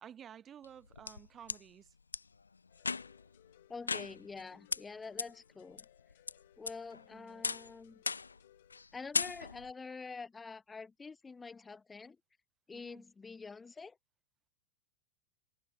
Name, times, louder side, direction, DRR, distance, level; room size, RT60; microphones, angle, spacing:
voice 1, 0.0-1.9 7.1-7.4 12.7-13.0, right 9 dB, 25° right, 1.3 m, -53 dB
sound 1, 0.6-1.6 2.1-2.2 2.8-3.3 3.9-4.4 4.7-4.8 5.2-5.3 5.8-6.3 6.7-7.0 7.4-7.7 8.1-8.4 8.7-8.9 9.1-9.7, left 4 dB, 75° left, 0.5 m, -36 dB
sound 2, 2.7-8.9, left 14 dB, 55° left, 3.0 m, -65 dB
voice 2, 3.7-5.8 6.6-8.0 8.9-12.2 12.7-14.0, left 4 dB, 15° left, 1.3 m, -47 dB
figure-of-eight pair, 90°, 0 cm